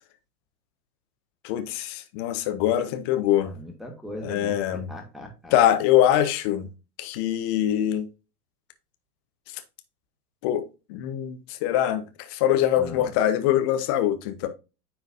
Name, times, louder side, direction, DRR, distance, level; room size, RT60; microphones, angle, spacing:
voice 1, 1.4-3.5 4.2-4.9 5.5-6.7 7.0-8.1 10.4-12.0 12.3-14.5, left 11 dB, 20° left, 0.4 m, -23 dB
voice 2, 3.4-5.5 12.8-13.1, left 1 dB, ahead, 2.0 m, -39 dB
9.5 x 3.9 x 2.6 m
figure-of-eight pair, 100°, 47 cm